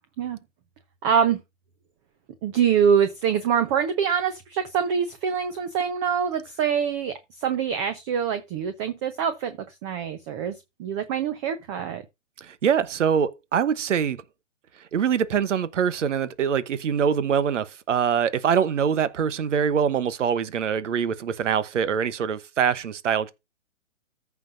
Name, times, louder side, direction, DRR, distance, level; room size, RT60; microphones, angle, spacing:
voice 1, 1.0-1.4 2.4-12.0, right 7 dB, 20° right, 0.8 m, -25 dB
voice 2, 12.4-14.2 14.9-23.3, right 7 dB, 70° right, 1.1 m, -24 dB
14.5 x 5.8 x 2.6 m
hypercardioid pair, 145°, 38 cm